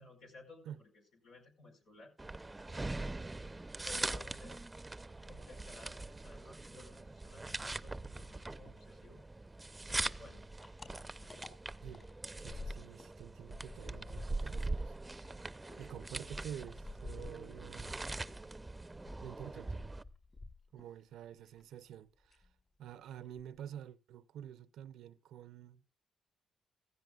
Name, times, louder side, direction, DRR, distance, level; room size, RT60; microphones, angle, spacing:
voice 1, 0.0-2.1 3.5-4.6 5.3-9.2 9.9-10.5, left 3 dB, 85° left, 4.8 m, -57 dB
sound 1, 2.2-20.0, right 2 dB, 20° right, 0.6 m, -42 dB
sound 2, 10.1-13.2 13.4-17.9 18.2-21.0 21.3-22.0 22.3-22.5 22.8-22.9 23.2-23.8, left 3 dB, 40° left, 4.8 m, -51 dB
voice 2, 12.3-15.0 15.2-15.4 15.7-18.0 19.2-19.8 20.7-22.5 22.8-25.8, right 10 dB, 85° right, 0.6 m, -49 dB
15.5 x 15.0 x 2.4 m
cardioid pair, 70°, 0 cm